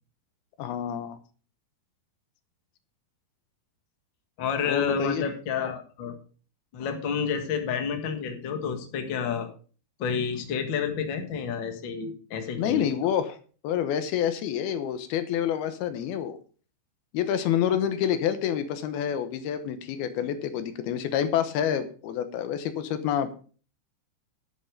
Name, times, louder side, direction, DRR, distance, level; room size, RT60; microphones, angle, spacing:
voice 1, 0.6-1.2 4.7-5.3 12.6-13.4 13.6-16.4 17.1-23.4, left 9 dB, 75° left, 10 dB, 2.8 m, -28 dB
voice 2, 4.4-6.2 6.7-9.5 10.0-12.9, left 6 dB, 50° left, 6 dB, 1.5 m, -30 dB
11.5 x 8.0 x 5.1 m, 0.40 s
omnidirectional pair, 4.6 m